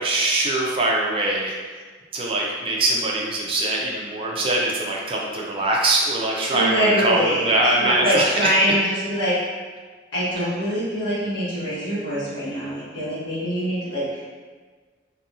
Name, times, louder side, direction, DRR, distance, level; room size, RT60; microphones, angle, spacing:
voice 1, 0.0-1.5 2.1-8.3, right 2 dB, 30° right, -2 dB, 0.4 m, -22 dB
voice 2, 6.5-9.3 10.1-14.2, equal, 90° left, -10 dB, 1.3 m, -24 dB
2.7 x 2.6 x 2.4 m, 1.4 s
head